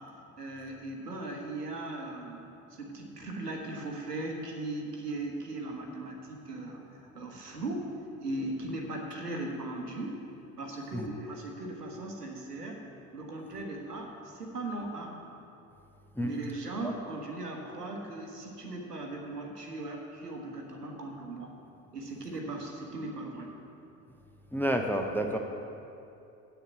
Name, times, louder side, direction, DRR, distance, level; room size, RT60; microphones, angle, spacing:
voice 1, 0.4-10.2 10.6-12.8 13.1-15.2 16.2-21.5 21.9-23.5, right 2 dB, 90° right, 1 dB, 1.2 m, -38 dB
voice 2, 24.5-25.4, right 1 dB, 5° left, 2 dB, 0.6 m, -29 dB
8.0 x 6.8 x 7.3 m, 2.7 s
figure-of-eight pair, 60°, 46 cm